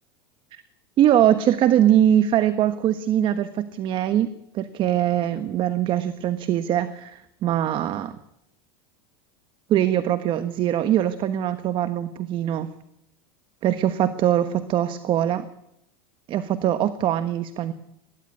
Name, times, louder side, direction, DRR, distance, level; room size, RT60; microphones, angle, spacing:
voice 1, 1.0-8.2 9.7-12.7 13.6-15.5 16.3-17.7, right 11 dB, 40° right, 11 dB, 1.3 m, -22 dB
20.5 x 15.5 x 9.8 m, 0.82 s
supercardioid pair, 110°, 12 cm